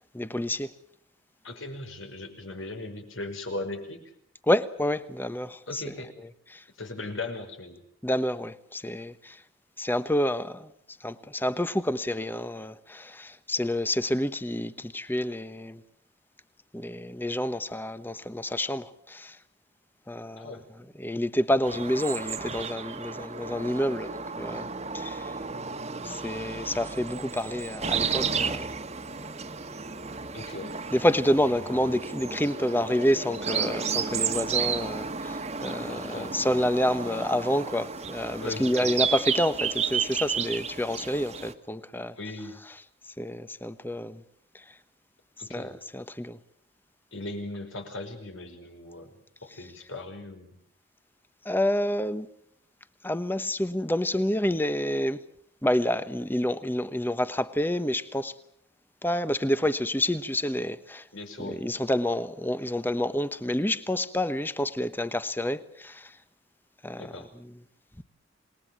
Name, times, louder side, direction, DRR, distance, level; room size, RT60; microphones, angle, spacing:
voice 1, 0.1-0.7 4.4-5.9 6.5-6.6 8.0-9.4 9.8-10.7 11.0-15.8 16.7-19.4 20.1-25.3 26.0-28.7 30.9-42.2 43.1-44.2 44.5-44.8 45.5-46.4 51.4-52.3 53.0-55.2 55.6-58.3 59.0-61.1 61.4-66.2 66.8-67.5, left 1 dB, 10° left, 1.0 m, -28 dB
voice 2, 1.4-4.0 5.7-6.1 6.8-7.8 20.4-20.6 30.3-30.7 35.8-36.6 38.4-38.9 42.2-42.6 45.4-45.7 47.1-50.6 61.1-61.6 67.0-67.3, left 2 dB, 80° left, 5.4 m, -38 dB
sound 1, 21.6-41.5, right 6 dB, 35° right, 1.5 m, -32 dB
27.5 x 20.5 x 7.5 m
head